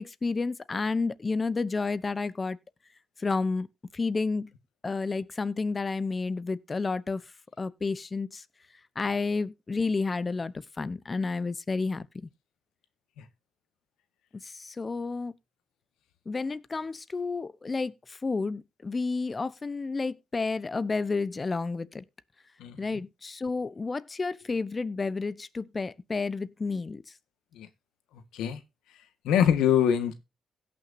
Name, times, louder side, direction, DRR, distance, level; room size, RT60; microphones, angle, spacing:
voice 1, 0.0-2.6 3.2-3.7 3.9-4.5 4.8-7.2 7.6-8.4 9.0-12.3 14.4-15.3 16.3-22.0 22.8-27.0, left 4 dB, 30° left, 0.9 m, -31 dB
voice 2, 22.6-23.0 27.5-27.7 28.3-28.6 29.2-30.1, left 9 dB, 85° left, 1.6 m, -24 dB
17.0 x 6.1 x 2.7 m
cardioid pair, 90°, 0 cm